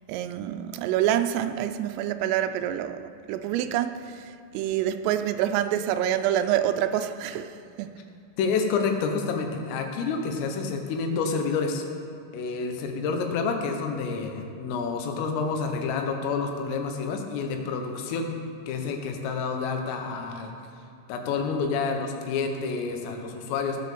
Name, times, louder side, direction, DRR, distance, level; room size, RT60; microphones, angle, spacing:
voice 1, 0.1-7.9, right 11 dB, 85° right, 3.1 m, -27 dB
voice 2, 8.4-11.8 12.3-18.3 18.7-20.5 21.1-23.8, left 5 dB, 80° left, 3.7 m, -28 dB
17.0 x 6.3 x 6.9 m
omnidirectional pair, 6.0 m